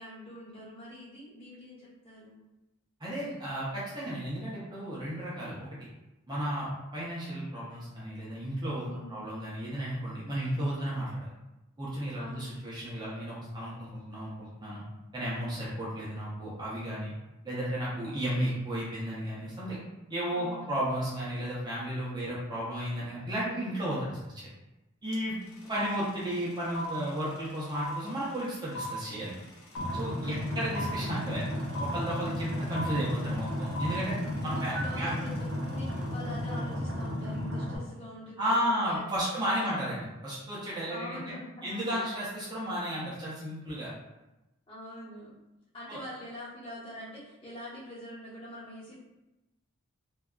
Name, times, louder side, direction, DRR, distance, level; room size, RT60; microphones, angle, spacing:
voice 1, 0.0-2.4 8.9-9.3 12.2-12.6 20.3-20.8 25.6-26.1 30.2-30.6 34.3-39.3 39.6-39.7 40.9-42.2 44.7-45.4 45.7-48.9, left 1 dB, 25° left, -10 dB, 1.0 m, -44 dB
voice 2, 3.0-5.6 6.3-11.3 11.8-14.8 15.1-17.1 17.4-19.8 20.1-24.5 25.0-25.4 25.7-29.3 29.9-31.4 31.8-34.2 34.4-35.1 38.4-41.2 41.6-43.9 45.9-46.0, equal, 20° right, -8 dB, 0.6 m, -33 dB
sound 1, 25.1-25.2 25.4-36.6, equal, 85° left, 0.7 m, -40 dB
sound 2, 29.8-37.8, left 1 dB, 80° right, 0.7 m, -34 dB
2.6 x 2.2 x 2.3 m, 0.99 s
head